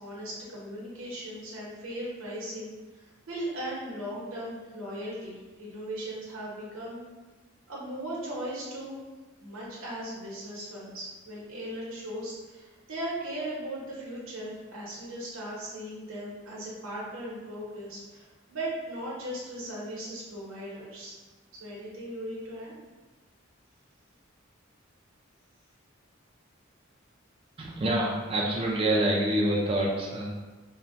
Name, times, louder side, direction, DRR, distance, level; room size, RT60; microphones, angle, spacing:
voice 1, 0.0-2.7 3.3-7.0 7.7-9.0 9.4-18.2 18.5-21.1 21.6-22.7, right 1 dB, 90° right, -5 dB, 0.8 m, -38 dB
voice 2, 27.6-30.3, right 1 dB, 30° right, -3 dB, 0.3 m, -26 dB
2.6 x 2.1 x 3.1 m, 1.3 s
head